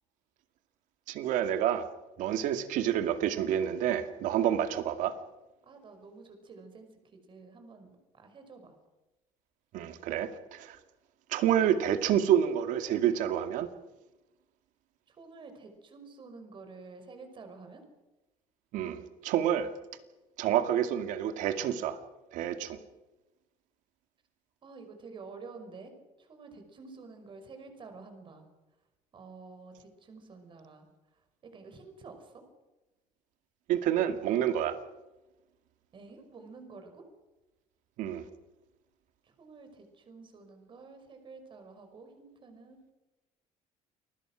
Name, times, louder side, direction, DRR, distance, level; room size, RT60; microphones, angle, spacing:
voice 1, 1.1-1.9 2.2-5.2 9.7-10.8 11.3-13.7 18.7-19.7 20.4-22.0 22.3-22.8 33.7-34.8 38.0-38.2, right 10 dB, 80° right, 9 dB, 2.2 m, -28 dB
voice 2, 5.6-8.7 15.1-17.8 24.6-25.9 26.2-28.4 29.1-30.9 31.4-32.4 35.9-37.0 39.2-42.8, right 4 dB, 40° right, 7 dB, 5.5 m, -49 dB
29.0 x 21.0 x 6.3 m, 1.1 s
cardioid pair, 130°, 13 cm